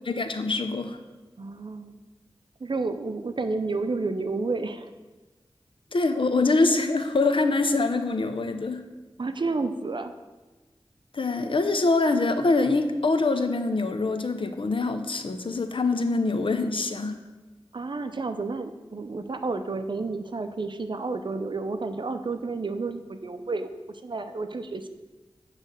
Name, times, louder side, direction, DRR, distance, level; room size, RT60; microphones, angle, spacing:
voice 1, 0.1-1.0 5.9-8.8 11.1-17.2, left 3 dB, 60° left, 7 dB, 0.6 m, -24 dB
voice 2, 1.4-2.0 2.6-4.9 9.2-10.1 17.7-24.9, right 3 dB, 55° right, 8 dB, 0.6 m, -31 dB
8.5 x 3.2 x 6.3 m, 1.2 s
wide cardioid pair, 60°, 10 cm